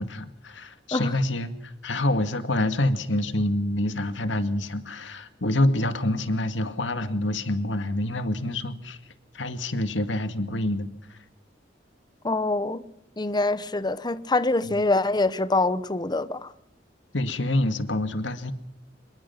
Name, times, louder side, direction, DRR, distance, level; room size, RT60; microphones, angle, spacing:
voice 1, 0.0-9.0 9.3-11.2 14.6-14.8 17.1-18.5, left 1 dB, 85° left, 2.0 m, -27 dB
voice 2, 12.2-12.8 13.2-16.5, left 2 dB, 25° left, 0.9 m, -25 dB
25.5 x 21.5 x 5.9 m
head